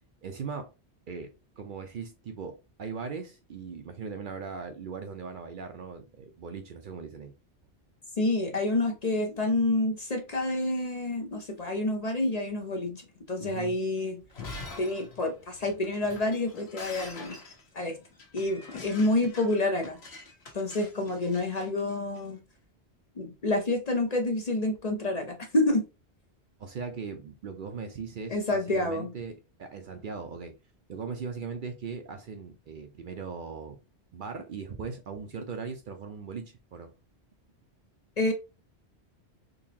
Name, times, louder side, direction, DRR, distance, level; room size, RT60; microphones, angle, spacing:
voice 1, 0.2-0.7 1.1-7.3 13.4-13.8 26.6-30.6 30.9-33.8 34.1-36.9, right 5 dB, 60° right, 0.6 m, -39 dB
voice 2, 8.2-14.2 14.8-17.4 17.7-18.0 18.3-20.0 20.5-22.4 23.2-25.8 28.3-29.1 38.2-38.3, left 2 dB, 45° left, 0.7 m, -28 dB
Shatter, 14.2-22.3, left 3 dB, 70° left, 1.3 m, -45 dB
3.8 x 2.8 x 2.7 m
omnidirectional pair, 1.1 m